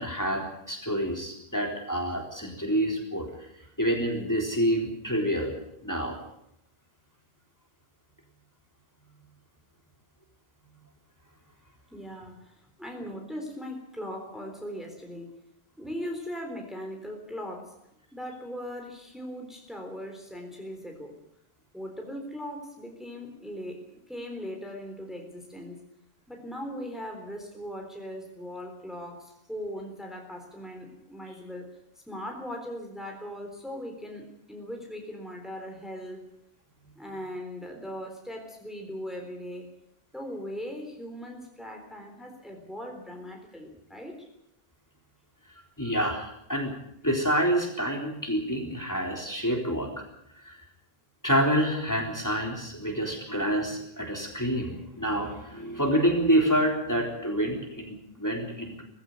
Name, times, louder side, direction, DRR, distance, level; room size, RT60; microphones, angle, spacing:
voice 1, 0.0-3.5 3.8-5.5 5.8-6.2 45.8-46.7 47.0-50.0 50.4-50.6 51.2-58.8, equal, 15° left, 1 dB, 3.9 m, -27 dB
voice 2, 11.9-15.4 15.8-17.8 18.1-21.2 21.7-25.8 26.3-31.7 32.1-36.2 37.0-39.7 40.1-44.3, equal, ahead, 2 dB, 3.7 m, -39 dB
19.0 x 16.0 x 9.6 m, 0.79 s
omnidirectional pair, 1.1 m